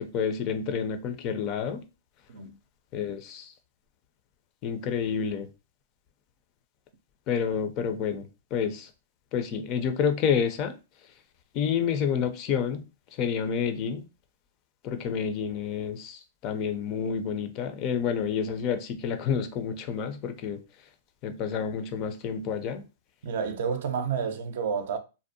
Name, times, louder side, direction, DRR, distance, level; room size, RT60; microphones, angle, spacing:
voice 1, 0.0-1.8 2.9-3.5 4.6-5.5 7.3-8.9 9.3-10.7 11.5-12.8 13.2-14.0 14.8-20.6 21.2-22.8, left 7 dB, 35° left, 0.4 m, -29 dB
voice 2, 23.2-25.0, right 6 dB, 65° right, 0.4 m, -30 dB
2.6 x 2.1 x 2.6 m
hypercardioid pair, 135°, 0 cm